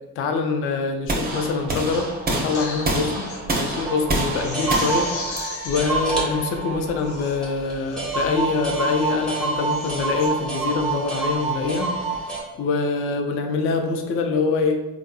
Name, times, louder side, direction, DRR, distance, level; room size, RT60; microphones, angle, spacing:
voice 1, 0.2-12.0 12.3-15.0, left 4 dB, 30° left, 5 dB, 0.4 m, -25 dB
sound 1, 1.1-7.2, right 2 dB, 20° right, 0.7 m, -28 dB
Crying sobbing, 2.5-3.4 3.9-4.0 4.4-5.9 6.6-6.7 7.0-7.4 7.9-8.3 8.7-9.2 9.5-10.3 10.8-11.1, left 4 dB, 65° left, 0.7 m, -36 dB
sound 2, 3.8-12.4, right 4 dB, ahead, 1.1 m, -27 dB
3.4 x 2.3 x 2.3 m, 1.2 s
figure-of-eight pair, 45°, 49 cm